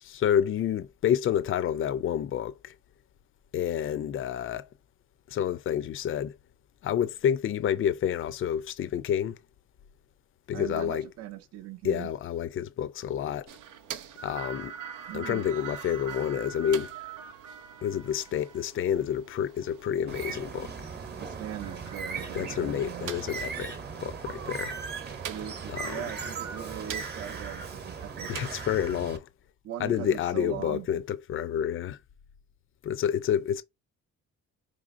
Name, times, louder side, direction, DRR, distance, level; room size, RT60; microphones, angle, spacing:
voice 1, 0.0-2.7 3.5-4.7 5.3-6.4 6.8-9.4 10.5-11.1 11.8-13.5 14.2-14.7 15.1-16.9 17.8-20.7 22.3-23.7 24.0-24.8 25.7-26.0 28.3-29.3 29.8-32.0 32.8-33.6, left 9 dB, 45° left, 0.4 m, -29 dB
voice 2, 10.5-12.1 15.1-15.5 21.2-23.1 25.3-28.3 29.6-31.0, right 11 dB, 55° right, 0.5 m, -40 dB
sound 1, 13.5-28.5, right 8 dB, 90° right, 0.7 m, -44 dB
Bird, 20.1-29.2, right 5 dB, 35° right, 0.9 m, -38 dB
5.0 x 3.3 x 2.5 m
cardioid pair, 135°, 30 cm